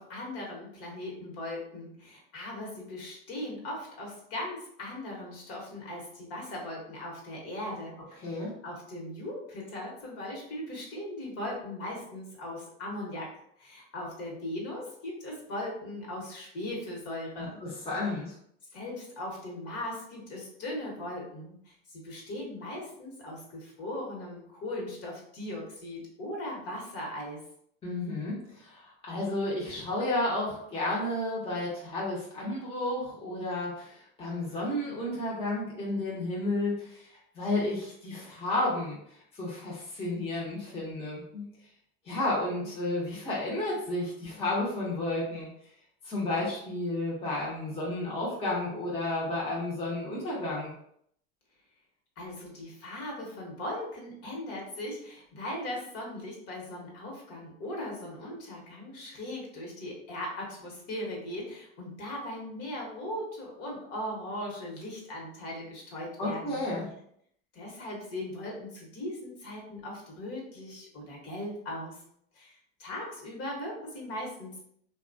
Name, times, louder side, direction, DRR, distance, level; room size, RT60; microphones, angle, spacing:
voice 1, 0.0-17.6 18.7-27.4 52.2-66.6 67.5-72.0 72.3-74.6, left 1 dB, 50° left, -2 dB, 1.2 m, -39 dB
voice 2, 8.2-8.5 17.4-18.3 27.8-41.5 42.0-45.5 46.0-50.7 66.2-66.9, left 2 dB, 20° left, -6 dB, 0.9 m, -32 dB
2.8 x 2.3 x 2.6 m, 0.69 s
supercardioid pair, 105°, 31 cm